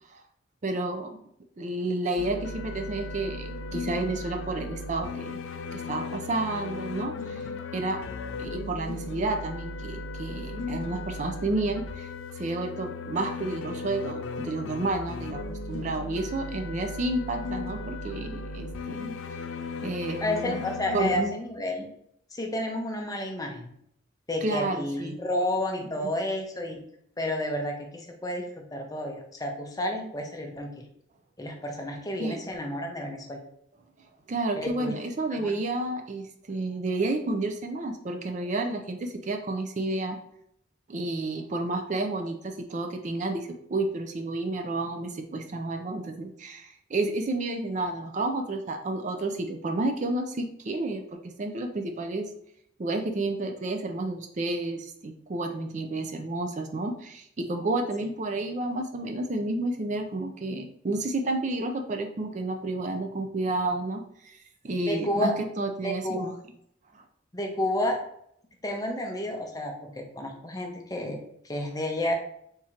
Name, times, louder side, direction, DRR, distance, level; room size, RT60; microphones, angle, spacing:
voice 1, 0.6-1.2 1.6-5.4 5.7-7.4 7.7-8.0 8.3-12.1 12.4-19.2 19.8-20.6 20.9-21.3 24.4-25.2 26.0-26.1 32.2-32.4 34.3-40.2 40.9-51.0 51.4-52.3 52.8-64.4 64.6-66.3 66.9-67.0, right 2 dB, 40° right, 5 dB, 0.4 m, -31 dB
sound 1, 2.2-21.2, left 3 dB, 85° left, 0.4 m, -36 dB
voice 2, 20.2-21.9 22.3-23.7 24.3-26.8 27.2-30.9 31.4-33.4 34.6-34.9 35.4-35.5 64.9-65.3 65.8-66.2 67.3-68.0 68.6-72.1, left 1 dB, 20° left, 2 dB, 0.6 m, -31 dB
3.7 x 2.8 x 4.3 m, 0.71 s
head